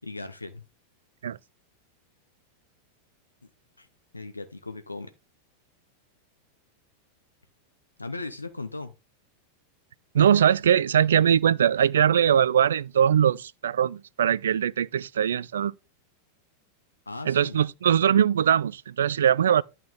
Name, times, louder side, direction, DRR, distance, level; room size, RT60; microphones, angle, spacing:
voice 1, 0.0-0.6 3.8-3.9 4.1-5.1 8.0-8.9 17.1-17.6, left 2 dB, 80° left, 0.9 m, -37 dB
voice 2, 10.1-15.7 17.3-19.6, right 9 dB, 65° right, 0.4 m, -21 dB
11.0 x 5.9 x 3.6 m
figure-of-eight pair, 90°, 0 cm